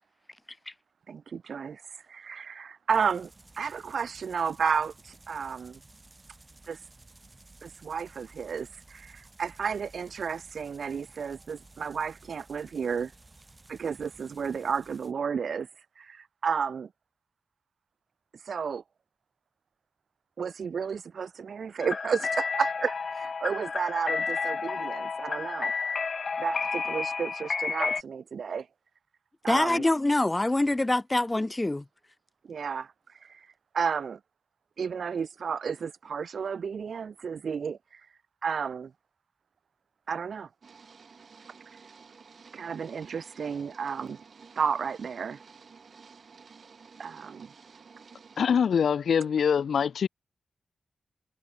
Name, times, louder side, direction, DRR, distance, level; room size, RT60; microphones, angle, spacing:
voice 1, 1.1-1.8 2.1-5.8 6.7-6.8 7.6-13.1 13.7-15.7 16.0-16.9 18.4-18.8 20.4-25.7 26.4-28.7 29.4-29.8 32.5-32.9 33.2-33.5 33.7-34.2 34.8-38.0 38.4-38.9 40.1-40.5 42.5-44.2 44.6-45.4 47.0-47.5, right 6 dB, 65° right, 0.8 m, -32 dB
sound 1, 2.9-15.1, right 2 dB, 20° right, 4.5 m, -55 dB
sound 2, 21.8-28.0, left 5 dB, 45° left, 1.2 m, -31 dB
voice 2, 29.5-31.8, left 2 dB, 15° left, 0.4 m, -25 dB
sound 3, 40.6-48.4, right 5 dB, 50° right, 2.9 m, -53 dB
voice 3, 48.4-50.1, left 7 dB, 90° left, 1.5 m, -24 dB
wide cardioid pair, 155°, 0 cm